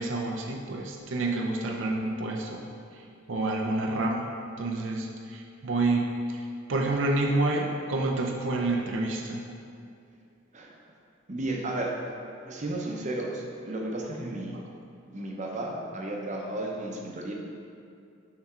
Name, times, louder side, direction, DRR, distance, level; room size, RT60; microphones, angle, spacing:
voice 1, 0.0-2.7 2.9-9.4, right 2 dB, 70° right, 0 dB, 0.6 m, -29 dB
voice 2, 11.3-11.9 12.5-14.6 15.1-17.3, right 1 dB, 40° right, -1 dB, 0.8 m, -33 dB
5.9 x 4.2 x 4.3 m, 2.4 s
head